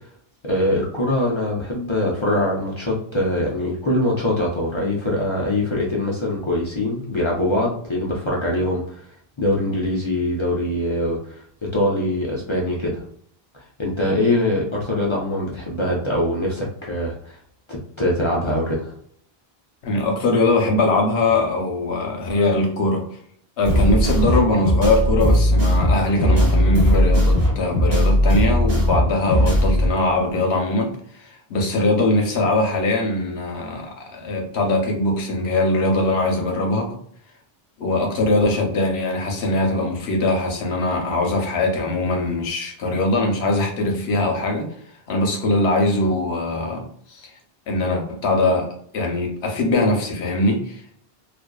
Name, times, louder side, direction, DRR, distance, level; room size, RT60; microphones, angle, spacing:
voice 1, 0.4-9.0 9.4-11.4 11.7-13.0 13.8-17.4 17.7-18.9, left 1 dB, 45° left, -3 dB, 0.4 m, -23 dB
voice 2, 19.8-23.0 23.6-30.9 31.1-36.9 37.8-44.7 45.1-47.2 47.7-48.7 48.9-50.8, left 2 dB, 80° left, 2 dB, 0.9 m, -21 dB
sound 1, 23.6-29.9, equal, 20° right, 1.2 m, -18 dB
2.5 x 2.3 x 2.2 m, 0.62 s
omnidirectional pair, 1.0 m